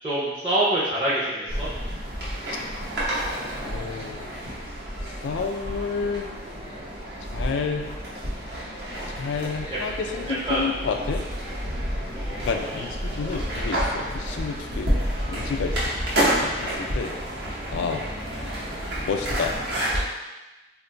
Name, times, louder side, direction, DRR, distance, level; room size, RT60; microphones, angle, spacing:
voice 1, 0.0-1.7 10.5-10.6 12.2-12.9, right 1 dB, 20° right, -10 dB, 0.5 m, -26 dB
sound 1, 1.5-20.0, equal, 65° right, 0.9 m, -29 dB
voice 2, 3.6-4.3 5.2-6.3 7.3-7.9 9.1-11.2 12.4-14.9 15.3-16.0 16.4-17.1 17.7-18.0 19.0-19.5, left 5 dB, 80° left, 4 dB, 0.3 m, -30 dB
2.5 x 2.3 x 3.9 m, 1.1 s
head